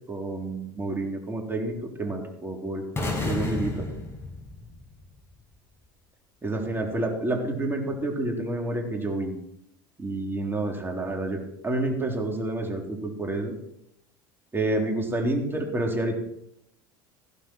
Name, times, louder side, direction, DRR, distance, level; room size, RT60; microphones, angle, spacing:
voice 1, 0.1-2.8 3.2-3.9 6.4-9.3 10.0-13.5 14.5-16.2, right 2 dB, 20° right, 2 dB, 3.7 m, -29 dB
sound 1, 3.0-5.1, left 2 dB, 20° left, 6.7 m, -31 dB
15.0 x 12.0 x 4.6 m, 0.77 s
hypercardioid pair, 80°, 12 cm